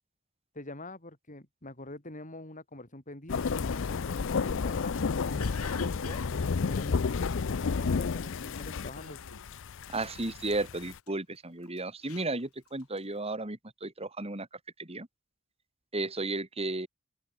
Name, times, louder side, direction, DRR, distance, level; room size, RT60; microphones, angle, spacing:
voice 1, 0.5-6.2 6.7-9.2, left 2 dB, 35° left, 4.4 m, -45 dB
sound 1, 3.3-11.0, left 5 dB, 60° left, 0.5 m, -31 dB
Cough, 3.7-7.8 8.3-8.6 9.0-9.7 9.9-11.1 11.6-13.1, left 5 dB, 85° left, 5.7 m, -46 dB
voice 2, 9.9-14.5 14.8-15.1 15.9-16.9, right 2 dB, 30° right, 3.0 m, -34 dB
open air
head